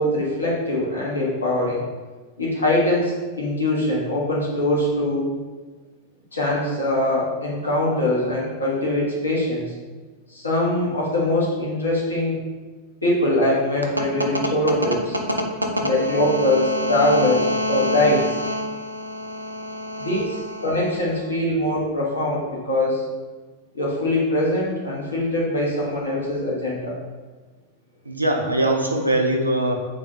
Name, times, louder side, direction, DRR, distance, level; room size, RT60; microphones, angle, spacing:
voice 1, 0.0-1.8 2.4-5.2 6.3-9.7 10.3-12.4 13.0-15.1 15.8-18.2 20.0-20.2 20.6-23.0 23.7-26.9, left 1 dB, 80° left, -5 dB, 1.1 m, -22 dB
voice 2, 15.8-21.0 28.1-29.7, right 1 dB, 85° right, 1 dB, 0.5 m, -25 dB
3.2 x 2.4 x 4.1 m, 1.3 s
figure-of-eight pair, 90°, 0 cm